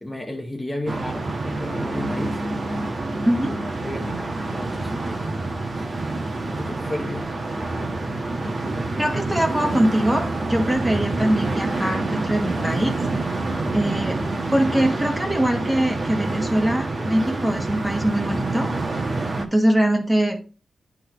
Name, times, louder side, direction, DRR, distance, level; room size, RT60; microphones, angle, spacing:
voice 1, 0.0-2.4 3.4-5.2 5.7-5.9 6.6-7.3, left 1 dB, 10° left, 0.9 m, -33 dB
sound 1, 0.9-19.4, right 2 dB, 45° right, 1.3 m, -27 dB
voice 2, 3.2-3.6 9.0-13.0 13.7-14.2 14.5-18.7 19.4-20.4, right 1 dB, 10° right, 1.7 m, -22 dB
10.5 x 3.9 x 3.0 m
wide cardioid pair, 100°, 0 cm